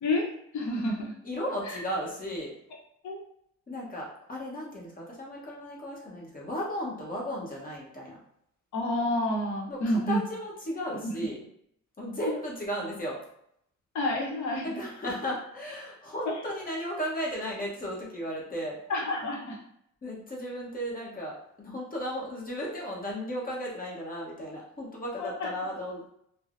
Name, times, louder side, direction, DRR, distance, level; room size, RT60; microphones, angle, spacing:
voice 1, 0.5-1.1 1.6-1.8 3.0-3.2 8.7-10.2 11.0-11.1 13.9-14.8 16.2-16.4 18.9-19.6 25.2-25.5, left 1 dB, 65° left, 0 dB, 0.8 m, -29 dB
voice 2, 1.3-2.5 3.7-8.2 9.7-11.4 12.0-13.2 14.6-18.8 20.0-26.1, equal, 30° left, -3 dB, 0.9 m, -35 dB
3.1 x 2.0 x 2.4 m, 0.72 s
cardioid pair, 90°, 30 cm